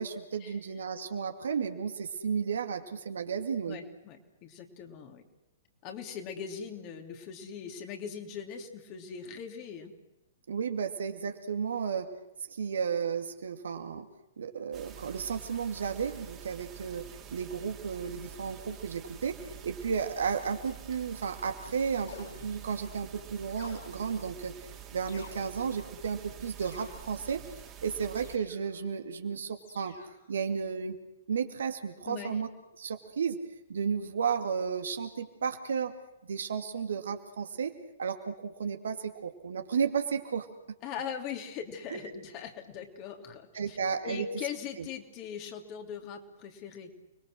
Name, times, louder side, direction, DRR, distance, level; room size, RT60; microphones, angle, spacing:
voice 1, 0.0-3.8 10.5-12.1 12.5-14.1 14.4-17.1 17.3-19.4 19.6-24.5 24.9-27.4 27.8-30.0 30.3-31.0 31.3-32.5 32.8-33.4 33.7-35.9 36.2-37.7 38.0-40.5 41.9-42.2 43.5-44.3 44.8-44.9, right 6 dB, 65° right, 6 dB, 2.3 m, -33 dB
voice 2, 3.7-5.2 5.8-9.9 32.1-32.4 40.8-43.8 44.0-46.9, left 7 dB, 35° left, 3 dB, 3.3 m, -40 dB
sound 1, 14.7-28.4, right 10 dB, 25° right, 3.0 m, -48 dB
sound 2, 22.1-22.9 23.6-24.4 25.1-25.8 26.6-27.3 28.1-28.8 29.6-30.3, left 5 dB, 55° left, 7.4 m, -52 dB
30.0 x 22.0 x 6.4 m, 0.94 s
figure-of-eight pair, 110°, 0 cm